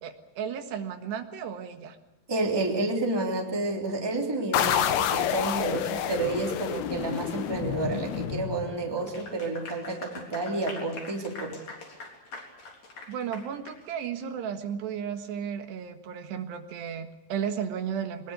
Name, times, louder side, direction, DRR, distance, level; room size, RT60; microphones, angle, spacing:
voice 1, 0.0-2.0 13.1-18.3, right 8 dB, 80° right, 6 dB, 3.8 m, -34 dB
voice 2, 2.3-11.6, right 2 dB, 5° right, 1 dB, 2.6 m, -30 dB
sound 1, 4.5-9.1, left 10 dB, 75° left, 3.0 m, -29 dB
Clapping / Applause, 9.0-13.8, left 3 dB, 45° left, 4.6 m, -43 dB
22.5 x 20.5 x 8.2 m, 0.92 s
omnidirectional pair, 4.8 m